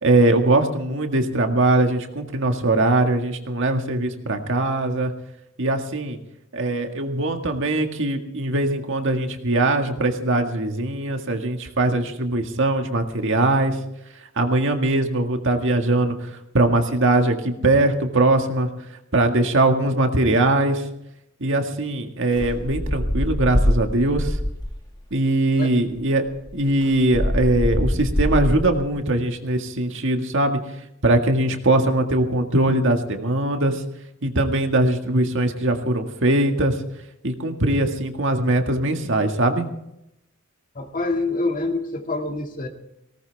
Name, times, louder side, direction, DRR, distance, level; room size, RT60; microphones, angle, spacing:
voice 1, 0.0-5.1 5.6-6.2 6.5-13.8 14.4-18.7 19.1-20.8 21.4-24.4 25.1-26.2 26.5-30.6 31.0-33.8 34.2-36.8 37.2-39.7, right 2 dB, 60° right, 4 dB, 1.9 m, -21 dB
Atmospheric building outside, 22.3-24.9 25.9-26.0 26.2-28.9, equal, 20° left, 1.6 m, -24 dB
voice 2, 40.7-42.7, left 2 dB, 40° left, 3 dB, 2.1 m, -26 dB
19.0 x 18.5 x 3.5 m, 0.82 s
head